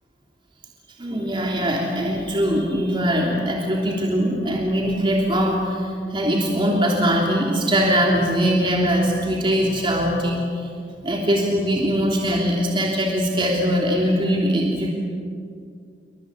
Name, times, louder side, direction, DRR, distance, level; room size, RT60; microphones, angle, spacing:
voice 1, 1.0-10.5 11.0-14.9, equal, 25° right, -1 dB, 3.2 m, -21 dB
28.0 x 24.5 x 8.3 m, 2.4 s
head